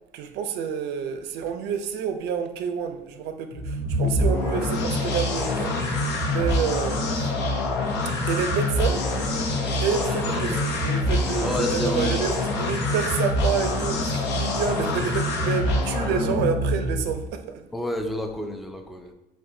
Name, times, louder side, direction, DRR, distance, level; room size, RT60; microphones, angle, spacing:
voice 1, 0.1-7.3 8.3-9.1 9.8-17.6, right 7 dB, 85° right, 0.4 m, -29 dB
sound 1, 3.5-17.3, left 1 dB, 90° left, 0.7 m, -25 dB
voice 2, 9.9-10.6 11.4-12.2 17.7-19.1, left 1 dB, ahead, 0.3 m, -30 dB
5.6 x 2.1 x 2.7 m
cardioid pair, 110°, 17 cm